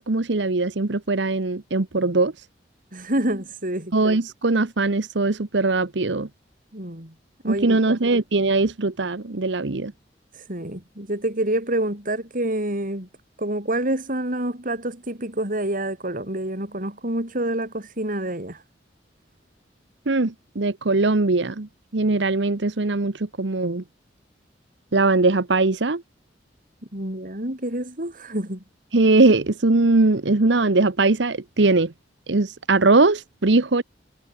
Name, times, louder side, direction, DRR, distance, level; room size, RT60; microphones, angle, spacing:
voice 1, 0.0-2.3 3.9-6.3 7.4-9.9 20.1-23.8 24.9-26.0 28.9-31.9 32.3-33.8, right 3 dB, 75° right, 1.1 m, -20 dB
voice 2, 2.9-3.9 6.7-7.1 7.4-7.8 10.3-13.1 13.4-18.6 26.9-28.6, right 1 dB, 50° right, 7.5 m, -27 dB
head